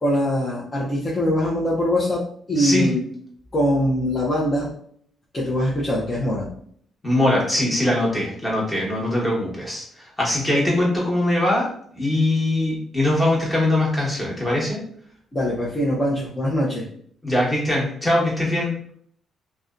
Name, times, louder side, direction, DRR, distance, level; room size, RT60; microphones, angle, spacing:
voice 1, 0.0-3.1 3.5-4.7 5.3-6.5 15.3-16.9, equal, 30° left, -7 dB, 0.6 m, -22 dB
voice 2, 2.6-2.9 7.0-11.7 12.0-14.8 17.2-18.7, left 1 dB, 15° left, -4 dB, 1.1 m, -21 dB
2.6 x 2.2 x 2.4 m, 0.62 s
cardioid pair, 90°, 0 cm